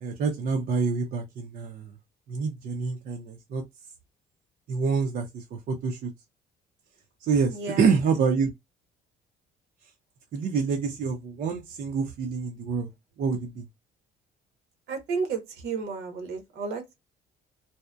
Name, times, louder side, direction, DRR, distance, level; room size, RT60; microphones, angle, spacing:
voice 1, 0.0-1.9 2.3-3.6 4.7-6.1 7.2-8.5 10.3-12.9 13.2-13.7, right 5 dB, 55° right, 0.6 m, -27 dB
voice 2, 7.5-7.8 14.9-17.0, right 5 dB, 75° right, 0.9 m, -32 dB
2.7 x 2.1 x 2.2 m
cardioid pair, 110°, 17 cm